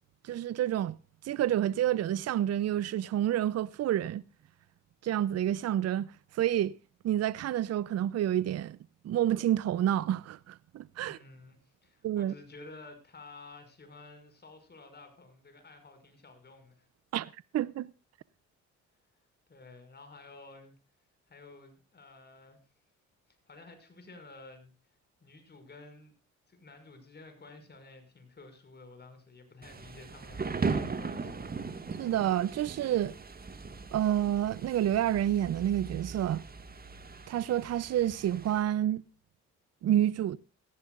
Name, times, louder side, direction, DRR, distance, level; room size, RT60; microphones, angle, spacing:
voice 1, 0.2-1.0 1.2-4.2 5.0-6.1 6.3-6.7 7.0-8.8 9.0-11.2 12.0-12.3 17.1-17.3 17.5-17.9 32.0-33.2 33.9-36.4 37.3-39.0 39.8-40.4, right 11 dB, 55° right, 0.6 m, -29 dB
voice 2, 11.0-16.9 19.5-20.7 21.3-22.6 23.5-24.7 25.2-26.1 26.5-31.4, left 3 dB, 35° left, 5.9 m, -52 dB
Thunder / Rain, 29.6-38.6, right 4 dB, 30° right, 1.9 m, -38 dB
18.0 x 14.5 x 2.5 m
cardioid pair, 90°, 30 cm